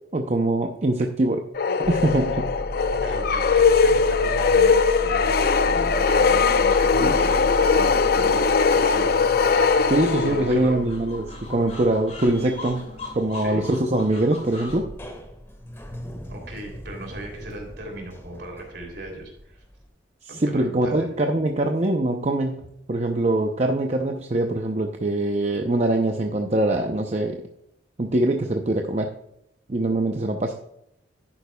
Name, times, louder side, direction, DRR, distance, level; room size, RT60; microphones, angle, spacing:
voice 1, 0.1-1.4 1.8-2.5 7.0-7.2 9.9-14.8 20.2-27.4 28.0-29.1 29.7-30.5, right 1 dB, 35° right, 4 dB, 0.6 m, -23 dB
sound 1, 1.6-10.7, left 5 dB, 55° left, 0.5 m, -20 dB
sound 2, 1.8-19.9, equal, 15° left, 1.6 m, -35 dB
voice 2, 3.0-9.6 10.2-10.8 13.3-13.7 16.3-19.6 20.3-21.1, right 1 dB, 60° right, 2 dB, 3.1 m, -37 dB
titi monkeys, 9.5-14.8, left 3 dB, 35° left, 2.4 m, -40 dB
11.0 x 9.3 x 2.3 m, 0.78 s
head